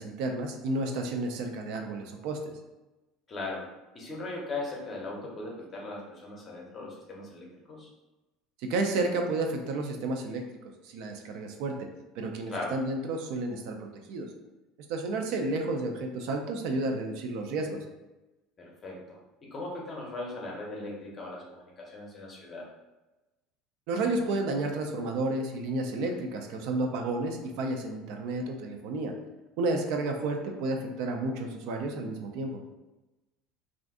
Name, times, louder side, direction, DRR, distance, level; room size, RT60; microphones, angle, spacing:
voice 1, 0.0-2.4 8.6-10.4 10.8-11.7 12.2-14.3 14.9-17.8 23.9-29.1 29.6-32.6, right 2 dB, 60° right, 3 dB, 0.4 m, -31 dB
voice 2, 3.3-3.7 3.9-7.9 12.5-12.7 18.6-22.7, left 2 dB, 20° left, -2 dB, 0.6 m, -39 dB
2.5 x 2.4 x 3.5 m, 1.1 s
cardioid pair, 170°, 0 cm